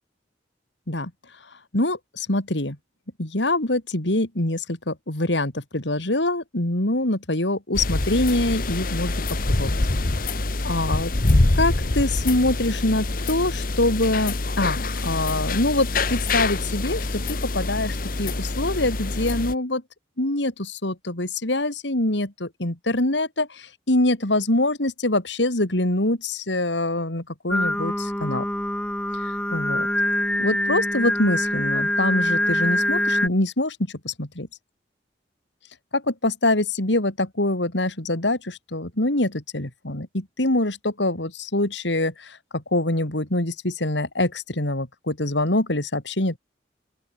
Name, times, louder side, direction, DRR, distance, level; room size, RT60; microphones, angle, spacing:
voice 1, 1.7-2.8 3.2-9.1 9.5-9.8 10.6-11.1 11.6-19.8 20.2-28.5 29.2-29.9 30.4-33.8 34.0-34.5 35.9-46.4, left 2 dB, 85° left, 3.5 m, -24 dB
sound 1, 7.7-19.5, left 2 dB, 50° left, 1.2 m, -25 dB
Singing, 27.5-33.3, left 1 dB, 5° left, 4.5 m, -24 dB
open air
head